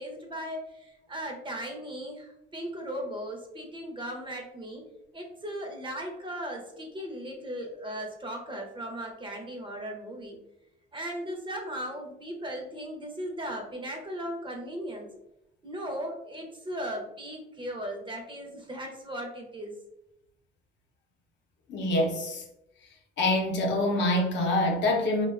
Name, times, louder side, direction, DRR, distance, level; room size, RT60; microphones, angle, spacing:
voice 1, 0.0-4.8 5.1-10.4 10.9-15.1 15.6-19.7, equal, 25° right, 1 dB, 0.6 m, -37 dB
voice 2, 21.7-22.4 23.2-25.3, left 1 dB, 65° left, 1 dB, 0.6 m, -25 dB
2.5 x 2.2 x 2.3 m, 0.84 s
cardioid pair, 90°, 20 cm